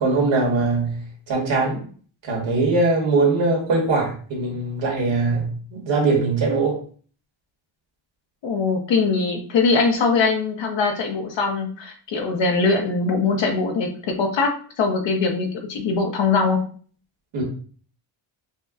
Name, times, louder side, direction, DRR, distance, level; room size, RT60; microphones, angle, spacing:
voice 1, 0.0-1.8 2.2-6.8 17.3-17.4, right 3 dB, 65° right, -2 dB, 1.6 m, -21 dB
voice 2, 8.4-16.6, left 4 dB, 60° left, 2 dB, 0.9 m, -22 dB
5.3 x 2.1 x 2.4 m, 0.43 s
wide cardioid pair, 170°, 49 cm